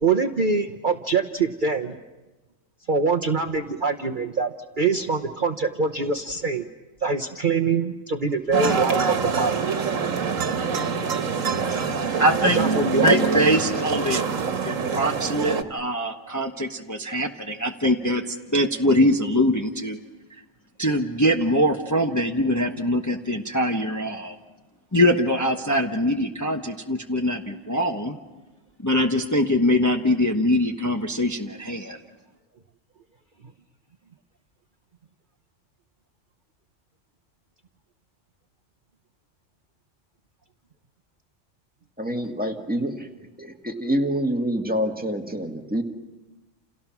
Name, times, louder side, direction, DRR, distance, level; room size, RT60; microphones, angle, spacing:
voice 1, 0.0-2.0 2.9-6.7 7.0-9.6 12.4-13.3, right 4 dB, 40° right, 6 dB, 1.0 m, -24 dB
sound 1, 8.5-15.6, right 5 dB, 85° right, 1.7 m, -25 dB
voice 2, 12.2-12.6 13.0-14.3 14.6-20.0 20.8-24.4 24.9-28.2 28.8-32.0, equal, 15° left, 3 dB, 1.1 m, -23 dB
voice 3, 42.0-43.1 43.4-45.8, equal, 5° right, 2 dB, 2.0 m, -26 dB
29.5 x 29.0 x 6.0 m, 1.1 s
omnidirectional pair, 1.3 m